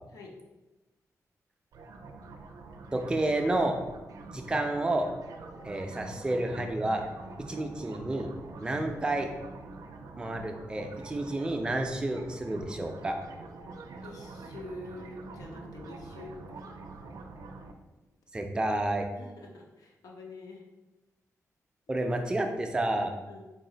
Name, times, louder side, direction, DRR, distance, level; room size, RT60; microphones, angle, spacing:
sound 1, 1.7-17.7, right 3 dB, 80° right, 0.4 m, -46 dB
voice 1, 2.9-3.8 4.2-5.1 5.6-7.0 7.5-8.3 8.6-9.3 10.2-13.2 18.3-19.1 21.9-23.1, right 1 dB, 15° right, 4 dB, 0.4 m, -30 dB
voice 2, 14.0-16.6 19.2-20.6 23.3-23.4, left 2 dB, 85° left, 0 dB, 0.7 m, -46 dB
4.0 x 2.4 x 3.8 m, 1.1 s
wide cardioid pair, 165°, 6 cm